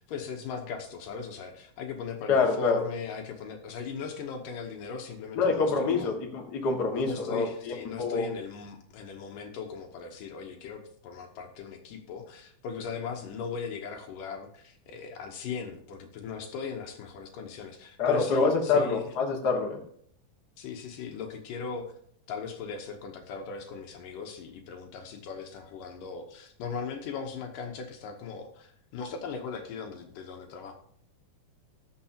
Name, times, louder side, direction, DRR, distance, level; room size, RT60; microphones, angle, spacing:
voice 1, 0.0-6.1 7.0-19.1 20.6-21.9 22.3-30.7, left 5 dB, 70° left, 4 dB, 2.5 m, -39 dB
voice 2, 2.3-2.8 5.3-8.3 18.0-19.8, left 4 dB, 40° left, 0 dB, 1.6 m, -26 dB
19.0 x 6.6 x 2.8 m, 0.63 s
omnidirectional pair, 4.2 m